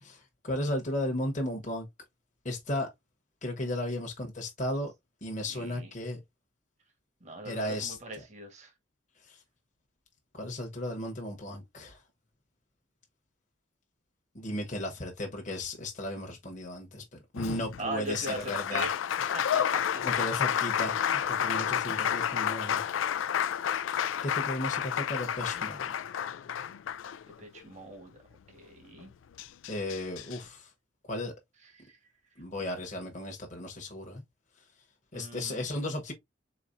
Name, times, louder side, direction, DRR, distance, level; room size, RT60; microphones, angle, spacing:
voice 1, 0.0-1.9 2.4-2.9 3.4-4.9 5.2-6.2 7.4-8.0 9.3-9.4 10.3-12.0 14.3-17.0 17.3-18.9 20.0-22.8 24.2-25.9 29.7-30.7 31.1-31.3 32.4-34.2 35.1-36.1, left 1 dB, 40° left, 1.0 m, -35 dB
voice 2, 5.5-5.9 7.2-8.7 17.8-18.9 19.3-20.0 27.4-28.2 28.5-29.1 31.6-32.4 35.1-35.7, right 1 dB, 35° right, 1.3 m, -40 dB
Applause, 17.3-27.6 29.0-29.1 29.4-30.4, left 9 dB, 85° left, 0.3 m, -30 dB
4.1 x 4.0 x 2.5 m
head